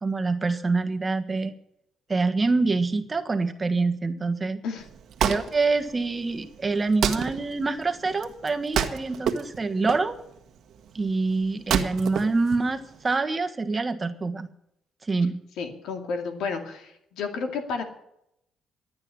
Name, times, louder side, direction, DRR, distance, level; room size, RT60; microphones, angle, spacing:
voice 1, 0.0-1.5 2.1-4.6 5.2-10.2 10.9-14.5 15.0-15.4, right 3 dB, 25° right, 6 dB, 1.4 m, -26 dB
Wood, 4.8-13.1, right 8 dB, 70° right, 1.4 m, -30 dB
voice 2, 15.6-17.8, left 5 dB, 85° left, 5 dB, 2.3 m, -31 dB
12.5 x 8.7 x 9.6 m, 0.78 s
cardioid pair, 90°, 0 cm